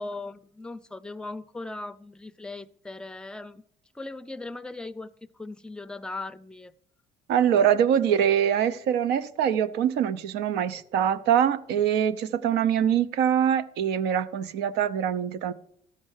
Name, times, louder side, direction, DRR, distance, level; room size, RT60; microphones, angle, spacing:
voice 1, 0.0-3.6 3.9-6.7, left 2 dB, 5° left, 0.4 m, -38 dB
voice 2, 7.3-15.5, right 9 dB, 80° right, 0.7 m, -24 dB
13.0 x 5.3 x 6.4 m
cardioid pair, 110°, 17 cm